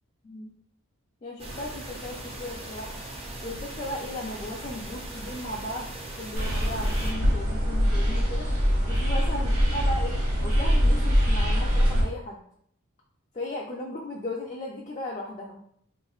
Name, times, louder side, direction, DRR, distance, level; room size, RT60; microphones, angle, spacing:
voice 1, 1.2-3.0 3.4-8.5 8.9-12.4 13.3-15.6, left 1 dB, 30° left, -3 dB, 0.4 m, -36 dB
sound 1, 1.4-7.1, right 1 dB, 25° right, 0.5 m, -39 dB
sound 2, 6.3-12.0, equal, 85° right, 1.3 m, -23 dB
3.8 x 2.9 x 2.3 m, 0.66 s
head